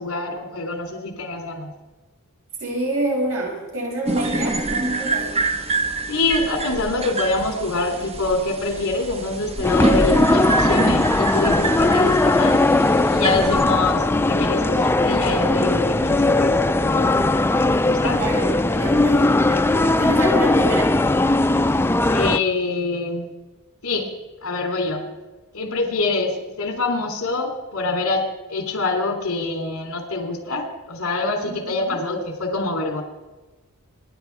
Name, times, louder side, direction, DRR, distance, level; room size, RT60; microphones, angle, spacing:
voice 1, 0.0-1.7 6.1-12.6 13.1-17.4 17.8-18.2 22.1-23.3 23.8-24.1 24.4-25.0 25.5-26.3 26.6-28.2 28.5-33.0, left 3 dB, 65° left, 4 dB, 3.3 m, -25 dB
voice 2, 2.6-5.3 18.1-20.9 31.4-32.0, right 1 dB, 65° right, -3 dB, 6.8 m, -28 dB
sound 1, 4.1-13.6, right 2 dB, 30° right, 1.0 m, -26 dB
sound 2, 9.6-22.4, left 2 dB, 10° left, 0.4 m, -19 dB
25.0 x 11.0 x 4.7 m, 1.2 s
head